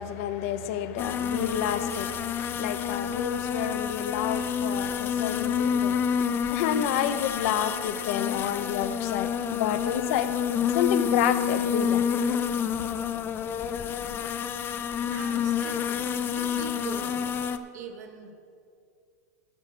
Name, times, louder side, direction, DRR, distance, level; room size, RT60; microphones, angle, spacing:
voice 1, 0.0-6.0 6.5-10.3 10.7-12.1, left 10 dB, 55° left, 11 dB, 0.7 m, -29 dB
sound 1, 1.0-17.6, left 8 dB, 25° left, 0.4 m, -28 dB
voice 2, 15.1-16.0 16.3-17.2 17.7-18.3, right 6 dB, 80° right, 4 dB, 1.4 m, -41 dB
11.5 x 6.4 x 6.7 m, 2.4 s
supercardioid pair, 130°, 9 cm